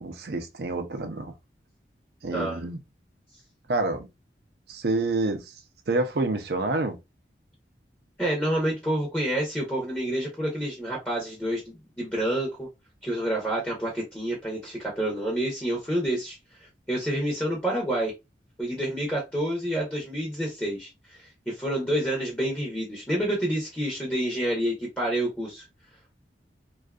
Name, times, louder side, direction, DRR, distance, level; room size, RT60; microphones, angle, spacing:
voice 1, 0.0-1.3 2.2-2.8 3.7-4.1 4.7-5.6 5.9-7.0, right 2 dB, 60° right, 0.5 m, -28 dB
voice 2, 8.2-12.7 13.0-18.1 18.6-25.6, right 1 dB, 10° left, 0.7 m, -28 dB
2.5 x 2.4 x 2.3 m
head